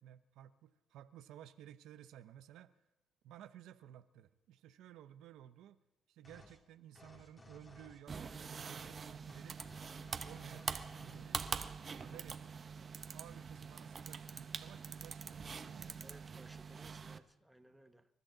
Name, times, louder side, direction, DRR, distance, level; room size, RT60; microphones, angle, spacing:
voice 1, 0.0-2.7 3.2-5.8 6.1-9.6 10.2-11.4 12.0-12.5 13.1-16.0, right 11 dB, 85° right, 11 dB, 0.7 m, -56 dB
sound 1, 6.2-6.6 6.9-8.5 8.8-9.0 9.3-11.3, left 1 dB, 30° left, 2.8 m, -59 dB
sound 2, 8.1-17.2, right 5 dB, 40° right, 0.9 m, -44 dB
voice 2, 16.0-18.1, right 1 dB, 5° right, 8 dB, 1.0 m, -60 dB
26.5 x 12.5 x 3.9 m, 1.0 s
cardioid pair, 90°, 0 cm